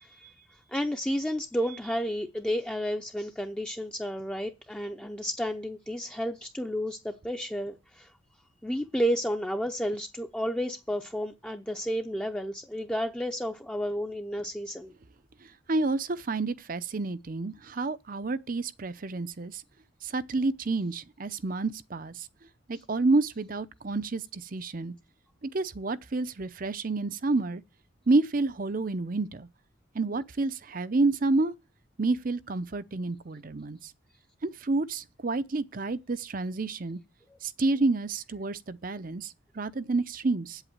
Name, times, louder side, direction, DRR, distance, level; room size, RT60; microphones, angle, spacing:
voice 1, 0.0-8.1 8.6-14.9 37.3-37.4, equal, 5° left, 0.6 m, -32 dB
voice 2, 15.7-19.6 20.0-22.3 22.7-24.9 25.4-27.6 28.1-29.5 29.9-31.5 32.0-33.9 34.4-37.0 37.4-40.6, right 3 dB, 45° right, 0.6 m, -29 dB
8.3 x 8.1 x 8.6 m
head